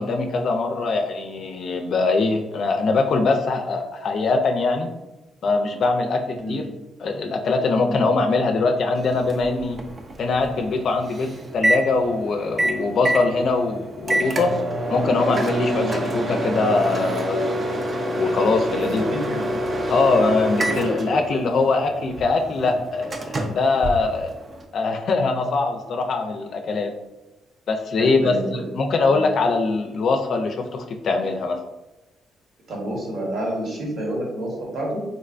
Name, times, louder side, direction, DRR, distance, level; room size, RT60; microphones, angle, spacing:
voice 1, 0.0-4.9 5.4-6.6 7.0-9.8 10.2-14.5 14.9-17.6 18.2-19.0 19.9-24.3 24.7-26.9 27.7-31.6, left 3 dB, 60° left, 5 dB, 0.4 m, -22 dB
Microwave oven, 9.0-24.6, right 1 dB, 35° right, 0.4 m, -27 dB
voice 2, 18.8-19.5 20.4-20.6 28.0-28.5 29.0-29.2 32.7-35.0, right 1 dB, 65° right, -2 dB, 1.1 m, -29 dB
3.9 x 2.2 x 2.4 m, 1.0 s
cardioid pair, 90°, 0 cm